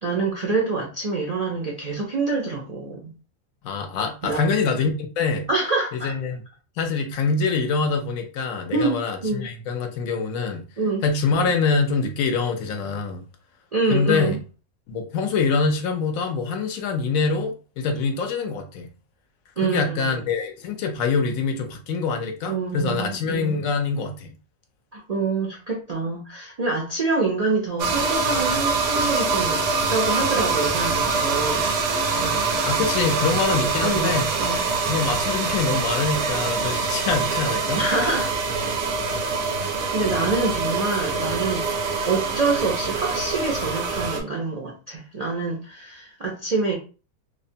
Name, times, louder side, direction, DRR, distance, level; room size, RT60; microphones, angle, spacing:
voice 1, 0.0-3.1 4.2-4.4 5.5-6.1 8.7-9.5 10.8-11.0 13.7-14.4 19.6-20.2 22.5-23.6 24.9-29.6 29.9-31.7 32.1-32.4 33.8-34.6 37.8-38.3 39.9-41.7 42.1-46.7, right 3 dB, 60° right, 0.4 m, -26 dB
voice 2, 3.6-5.5 6.0-6.4 6.8-10.6 11.0-13.2 13.9-14.4 14.9-18.9 19.6-24.4 32.3-34.3 34.8-37.8, left 4 dB, 75° left, 1.0 m, -25 dB
sound 1, 27.8-44.2, right 4 dB, 80° right, 1.1 m, -24 dB
3.1 x 2.1 x 2.6 m
omnidirectional pair, 1.5 m